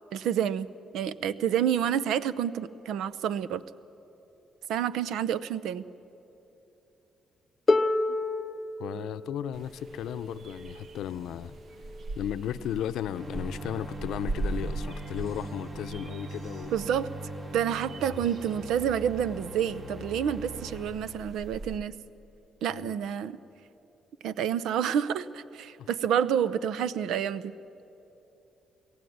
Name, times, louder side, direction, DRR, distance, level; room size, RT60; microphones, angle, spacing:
voice 1, 0.1-0.7 0.9-3.6 4.7-5.8 16.7-17.1 17.5-21.9 22.6-23.4 24.2-27.5, right 9 dB, 85° right, 17 dB, 0.6 m, -28 dB
Harp, 7.7-13.5 14.5-14.6, left 2 dB, 35° left, 0.6 m, -31 dB
voice 2, 8.8-11.6 12.2-16.7 22.7-23.0 25.8-25.9, left 10 dB, 80° left, 12 dB, 0.6 m, -35 dB
sound 1, 9.5-21.8, right 2 dB, 50° right, 1.1 m, -41 dB
sound 2, 13.1-20.9, right 2 dB, 35° right, 2.9 m, -41 dB
22.5 x 16.0 x 9.4 m, 2.9 s
cardioid pair, 90°, 0 cm